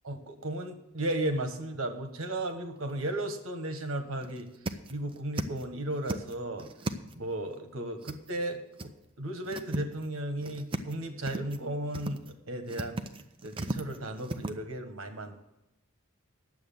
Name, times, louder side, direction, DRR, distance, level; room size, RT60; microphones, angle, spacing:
voice 1, 0.0-4.5 4.9-6.7 7.1-8.9 9.2-13.0 13.4-15.4, right 1 dB, 85° right, 7 dB, 1.5 m, -35 dB
sound 1, 2.5-2.9 3.3-3.4 3.8-3.9 4.2-5.6 5.9-7.3 8.0-8.5 8.8-8.9 9.3-10.1 10.4-10.9 11.2-11.6 11.9-12.3 12.7-14.5, right 2 dB, 25° right, 0.6 m, -36 dB
10.0 x 7.8 x 7.0 m, 0.93 s
head